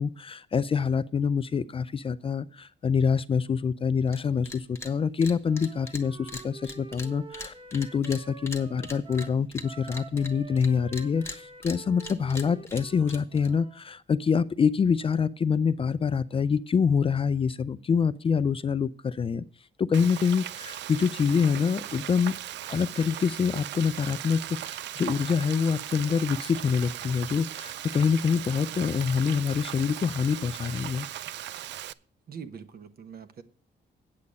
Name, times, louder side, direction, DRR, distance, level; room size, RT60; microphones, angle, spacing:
voice 1, 0.0-19.4 19.8-22.4 22.7-31.1, left 6 dB, 30° left, 0.4 m, -26 dB
sound 1, 4.1-4.2 4.5-4.9 5.2-10.7 10.9-13.5, left 2 dB, 15° left, 1.1 m, -41 dB
Wind instrument woodwind instrument, 5.4-13.9, right 4 dB, 30° right, 1.1 m, -47 dB
Frying (food), 19.9-31.9, right 12 dB, 80° right, 0.4 m, -38 dB
voice 2, 32.3-33.4, right 6 dB, 55° right, 1.0 m, -43 dB
8.5 x 8.4 x 5.2 m
cardioid pair, 125°, 18 cm